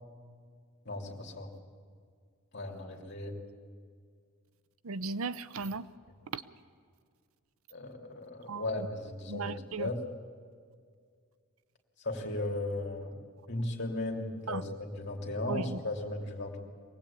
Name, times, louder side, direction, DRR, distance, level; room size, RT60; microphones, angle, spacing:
voice 1, 0.8-1.5 2.5-3.3 7.7-10.0 12.0-13.2 13.5-16.6, left 2 dB, 50° left, 1 dB, 2.8 m, -36 dB
voice 2, 4.8-5.9 6.3-6.4 8.5-8.9 9.3-9.9 14.5-14.6 15.5-15.8, right 4 dB, 80° right, 15 dB, 0.7 m, -36 dB
23.5 x 18.0 x 8.6 m, 2.1 s
head